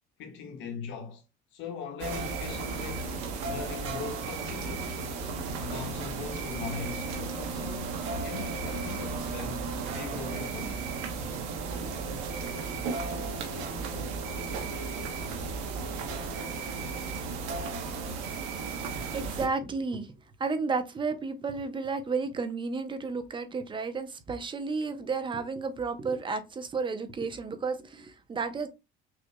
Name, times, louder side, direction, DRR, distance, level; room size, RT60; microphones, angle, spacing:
voice 1, 0.2-1.2 1.5-5.0 5.6-10.8, left 6 dB, 70° left, 1.3 m, -40 dB
sound 1, 2.0-19.5, right 4 dB, 90° right, 1.1 m, -34 dB
voice 2, 19.1-20.1 20.4-28.7, right 4 dB, 25° right, 0.7 m, -32 dB
6.3 x 2.6 x 2.3 m
cardioid pair, 120°, 20 cm